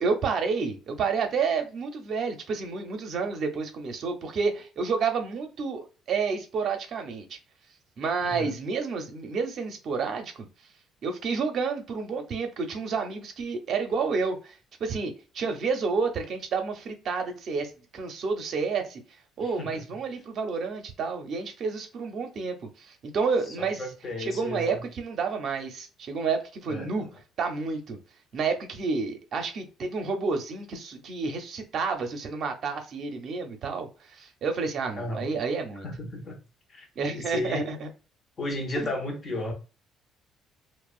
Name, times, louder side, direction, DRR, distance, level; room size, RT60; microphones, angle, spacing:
voice 1, 0.0-7.4 8.0-10.5 11.0-19.0 19.4-23.8 24.2-27.0 27.4-28.0 28.3-35.9 37.0-37.9 38.7-38.9, right 5 dB, 50° right, 0.6 m, -30 dB
voice 2, 8.2-8.5 19.4-20.0 23.5-24.8 26.7-27.1 34.9-35.3 35.8-36.4 36.7-36.9 37.1-37.7 38.4-39.5, left 1 dB, 30° left, 0.6 m, -34 dB
2.8 x 2.0 x 2.4 m
cardioid pair, 135°, 0 cm